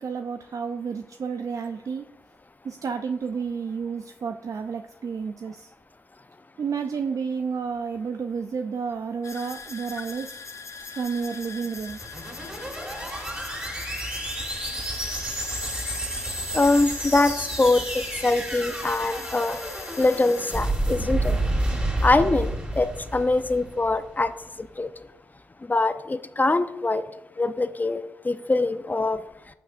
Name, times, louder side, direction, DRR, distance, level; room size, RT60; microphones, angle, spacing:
voice 1, 0.0-2.0 2.6-5.7 6.6-10.4 10.9-12.0, right 5 dB, 50° right, 7 dB, 0.5 m, -31 dB
sound 1, 9.2-20.6, left 5 dB, 45° left, 1.0 m, -40 dB
sound 2, 11.8-24.1, right 1 dB, 20° right, 3.0 m, -30 dB
voice 2, 16.5-19.6 20.0-21.4 22.0-24.3 24.8-24.9 25.7-27.0 27.4-29.2, left 2 dB, 25° left, 11 dB, 0.6 m, -23 dB
11.5 x 6.5 x 2.6 m, 0.84 s
hypercardioid pair, 40°, 7 cm